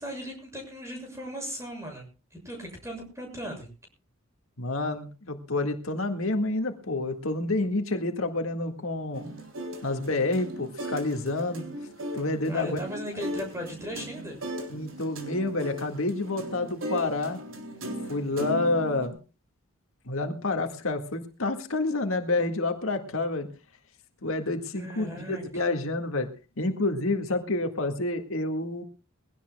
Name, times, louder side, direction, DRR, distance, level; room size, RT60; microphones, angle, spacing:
voice 1, 0.0-3.7 12.5-14.4 24.8-25.7, equal, 15° right, 2 dB, 6.9 m, -37 dB
voice 2, 4.6-9.3 9.8-11.7 12.1-12.8 14.7-17.4 18.1-19.2 20.1-23.5 24.2-26.3 26.6-28.8, left 2 dB, 70° left, 5 dB, 1.9 m, -28 dB
sound 1, 9.1-19.1, right 1 dB, 65° right, 3.4 m, -38 dB
22.5 x 17.0 x 2.3 m, 0.33 s
head